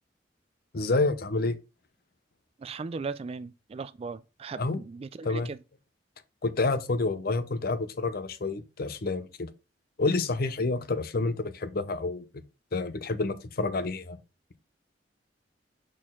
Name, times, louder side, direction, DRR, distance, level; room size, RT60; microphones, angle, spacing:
voice 1, 0.7-1.6 4.6-4.8 5.2-5.5 6.4-9.5 10.0-12.3 12.7-14.2, left 3 dB, 55° left, 0.7 m, -28 dB
voice 2, 2.6-5.6, right 4 dB, 35° right, 0.3 m, -38 dB
6.4 x 4.3 x 3.7 m
head